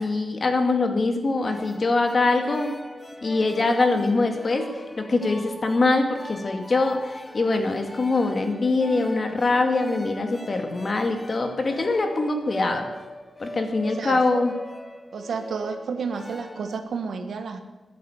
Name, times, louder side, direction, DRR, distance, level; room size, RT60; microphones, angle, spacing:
voice 1, 0.0-2.7 3.2-12.9 13.4-14.5, left 3 dB, 40° left, 5 dB, 2.1 m, -23 dB
sound 1, 1.4-16.8, left 1 dB, 10° left, 1.4 m, -40 dB
voice 2, 13.8-14.2 15.1-17.6, right 5 dB, 80° right, 7 dB, 1.6 m, -31 dB
13.5 x 10.5 x 8.6 m, 1.2 s
wide cardioid pair, 125°, 0 cm